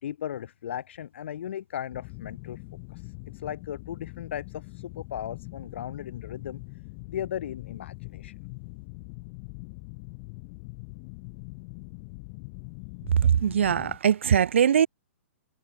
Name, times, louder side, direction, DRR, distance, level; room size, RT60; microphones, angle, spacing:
voice 1, 0.0-2.6 2.9-3.0 3.4-6.6 7.1-8.3, left 10 dB, 60° left, 2.4 m, -36 dB
sound 1, 1.9-14.0, left 31 dB, 40° left, 2.4 m, -42 dB
voice 2, 13.2-14.9, right 8 dB, 65° right, 1.0 m, -21 dB
figure-of-eight pair, 115°, 7 cm